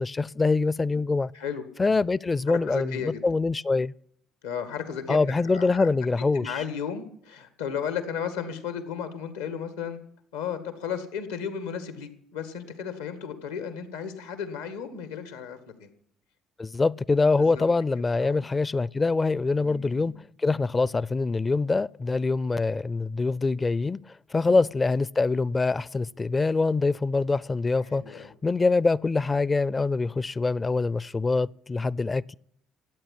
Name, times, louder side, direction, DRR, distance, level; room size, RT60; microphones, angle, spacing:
voice 1, 0.0-1.3 1.8-3.9 5.1-6.6 16.6-20.1 20.4-24.0 24.3-32.3, left 3 dB, 25° left, 0.5 m, -24 dB
voice 2, 1.3-1.6 2.5-3.2 4.4-5.9 6.3-10.0 10.3-15.9 17.4-17.7 18.1-18.4 19.6-20.2 24.4-24.6 27.8-28.3, left 7 dB, 85° left, 1.9 m, -34 dB
13.5 x 9.0 x 10.0 m
hypercardioid pair, 55°, 0 cm